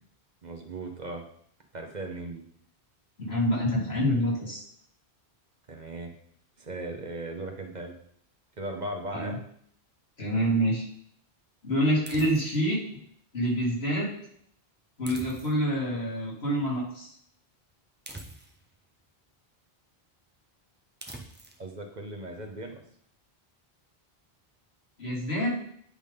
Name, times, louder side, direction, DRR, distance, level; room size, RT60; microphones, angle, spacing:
voice 1, 0.4-1.2 1.7-2.4 5.7-6.1 6.6-8.0 8.6-9.4 21.6-22.7, right 2 dB, 45° right, 3 dB, 1.1 m, -37 dB
voice 2, 3.2-4.6 9.1-9.4 10.2-10.9 11.6-13.0 13.3-14.1 15.0-17.1 25.0-25.6, equal, 80° left, -5 dB, 2.8 m, -27 dB
sound 1, 12.1-12.7 15.0-15.8 18.1-18.7 21.0-21.6, right 1 dB, 10° right, 0.8 m, -44 dB
10.0 x 3.7 x 5.2 m, 0.66 s
omnidirectional pair, 1.1 m